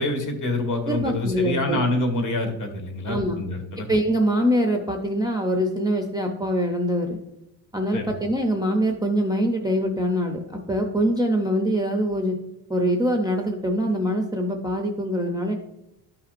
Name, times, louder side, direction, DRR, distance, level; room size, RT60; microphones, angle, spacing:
voice 1, 0.0-3.9 7.9-8.1, left 2 dB, 45° left, 4 dB, 1.7 m, -26 dB
voice 2, 0.9-1.8 3.1-3.4 3.9-7.2 7.7-12.4 12.7-15.5, equal, 10° right, 2 dB, 0.5 m, -24 dB
13.0 x 5.7 x 2.5 m, 0.88 s
cardioid pair, 165°, 42 cm